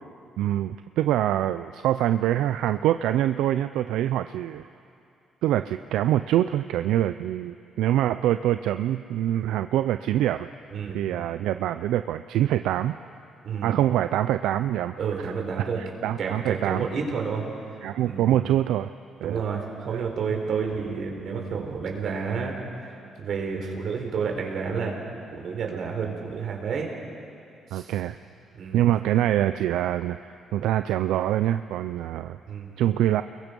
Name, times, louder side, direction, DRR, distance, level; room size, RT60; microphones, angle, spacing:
voice 1, 0.4-4.7 5.4-10.5 10.9-13.0 13.6-15.3 15.6-16.9 17.8-18.9 19.2-19.4 19.9-20.0 27.7-28.2 28.7-30.2 30.5-32.4 32.8-33.2, right 12 dB, 90° right, 10 dB, 0.5 m, -25 dB
voice 2, 10.7-11.0 13.4-13.7 15.0-15.8 16.2-17.4 18.0-18.3 19.2-22.6 22.8-22.9 23.2-24.9 25.3-26.9 27.7-27.9 28.5-28.9 32.5-32.7, right 5 dB, 65° right, 1 dB, 4.4 m, -30 dB
29.0 x 22.0 x 5.4 m, 2.6 s
cardioid pair, 90°, 0 cm